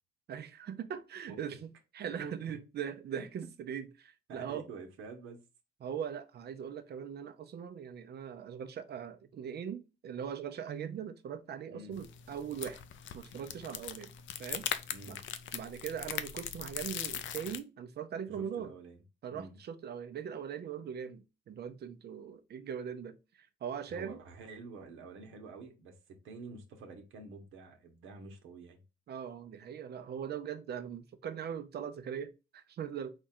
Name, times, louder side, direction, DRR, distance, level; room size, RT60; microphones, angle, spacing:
voice 1, 0.3-4.7 5.8-12.8 13.1-14.1 14.4-14.7 15.1-15.2 15.5-18.7 19.2-24.2 29.1-33.1, right 8 dB, 55° right, 0.6 m, -40 dB
voice 2, 1.3-1.6 2.2-2.6 3.1-3.2 4.3-5.4 11.7-12.0 14.9-15.2 18.3-19.0 19.3-19.6 23.9-26.0 26.2-28.8, right 4 dB, 80° right, 1.0 m, -48 dB
sound 1, 11.9-17.6, left 9 dB, 70° left, 0.5 m, -40 dB
4.4 x 2.4 x 4.3 m
cardioid pair, 90°, 20 cm